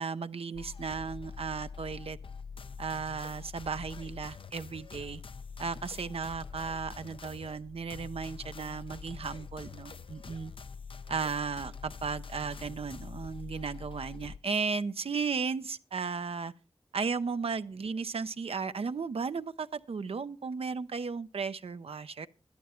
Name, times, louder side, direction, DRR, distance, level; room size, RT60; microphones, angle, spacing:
voice 1, 0.0-2.2 2.8-5.2 5.6-10.5 11.1-16.5 16.9-22.3, right 5 dB, 80° right, 0.6 m, -35 dB
sound 1, 0.5-14.4, left 5 dB, 60° left, 0.5 m, -45 dB
13.0 x 11.5 x 4.4 m
cardioid pair, 40°, 10 cm